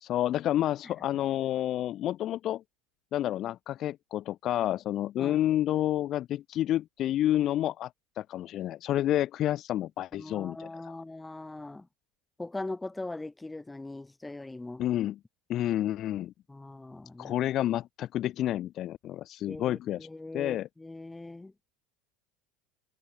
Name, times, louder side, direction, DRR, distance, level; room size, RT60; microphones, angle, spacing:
voice 1, 0.0-2.6 3.1-7.9 8.2-11.0 14.8-15.2 15.5-16.3 17.2-20.1 20.3-20.7, left 12 dB, 50° left, 0.4 m, -29 dB
voice 2, 10.1-11.9 12.4-14.8 16.5-17.4 19.4-21.5, left 2 dB, 10° left, 1.0 m, -41 dB
hypercardioid pair, 90°, 0 cm